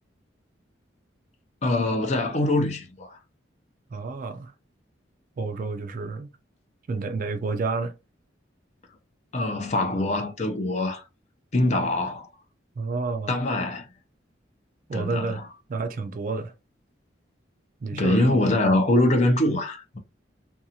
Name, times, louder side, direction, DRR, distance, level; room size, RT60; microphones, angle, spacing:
voice 1, 1.6-3.2 9.3-11.0 11.5-12.3 13.3-13.9 14.9-15.4 17.9-20.0, left 1 dB, 40° left, 0.5 m, -23 dB
voice 2, 3.9-4.5 5.4-6.3 6.9-7.9 12.8-13.4 14.9-15.4 15.7-16.5 17.8-18.3, right 3 dB, 45° right, 0.3 m, -30 dB
2.5 x 2.3 x 2.7 m
head